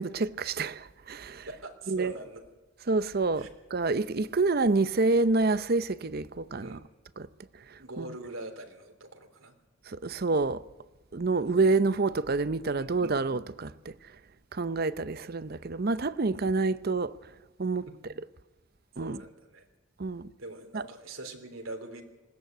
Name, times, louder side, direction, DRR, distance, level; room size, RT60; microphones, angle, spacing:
voice 1, 0.0-1.5 1.9-2.1 2.9-6.8 7.2-7.3 7.7-8.1 9.9-10.6 11.1-13.9 14.5-17.1 17.6-17.9 19.0-19.2 20.0-20.3 20.7-20.8, right 3 dB, 50° right, 0.7 m, -28 dB
voice 2, 1.5-2.4 3.4-3.5 6.6-6.8 7.8-9.5 11.3-11.5 12.8-13.2 17.9-18.0 19.0-19.7 20.4-22.0, right 2 dB, 85° right, 3.4 m, -43 dB
20.5 x 17.0 x 9.2 m
head